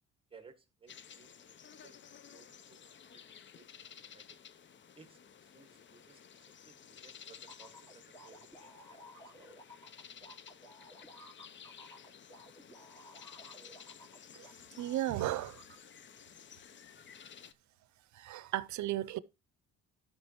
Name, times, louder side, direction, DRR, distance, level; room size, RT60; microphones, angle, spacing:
voice 1, 0.3-2.0 2.3-2.8 3.1-3.2 3.5-3.7 3.9-4.2 4.9-9.0 9.4-9.6, right 5 dB, 20° right, 1.6 m, -60 dB
sound 1, 0.9-17.5, left 8 dB, 40° left, 0.6 m, -54 dB
sound 2, 7.5-14.5 14.8-15.7, equal, 15° left, 2.9 m, -55 dB
voice 2, 14.8-15.6 18.1-19.2, right 14 dB, 70° right, 0.6 m, -35 dB
13.0 x 5.8 x 2.9 m
cardioid pair, 90°, 30 cm